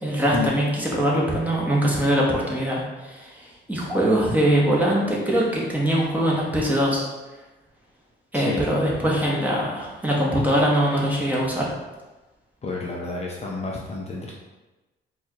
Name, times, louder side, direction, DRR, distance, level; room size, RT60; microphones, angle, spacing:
voice 1, 0.0-7.0 8.3-11.7, equal, 10° right, -4 dB, 1.0 m, -22 dB
voice 2, 8.3-8.6 12.6-14.3, left 3 dB, 35° left, -2 dB, 0.5 m, -30 dB
4.3 x 2.3 x 2.9 m, 1.1 s
cardioid pair, 90°, 20 cm